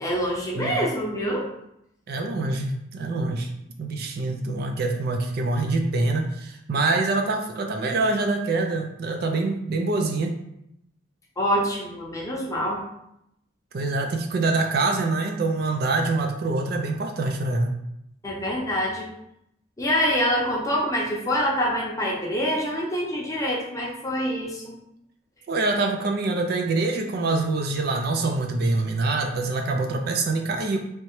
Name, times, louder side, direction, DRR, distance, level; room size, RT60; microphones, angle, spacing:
voice 1, 0.0-1.5 11.4-12.8 18.2-19.1 19.8-24.8, equal, 15° left, -3 dB, 0.7 m, -25 dB
voice 2, 2.1-3.5 3.8-10.3 13.7-17.8 25.5-30.8, right 3 dB, 50° right, 4 dB, 0.4 m, -25 dB
3.3 x 2.8 x 3.1 m, 0.79 s
head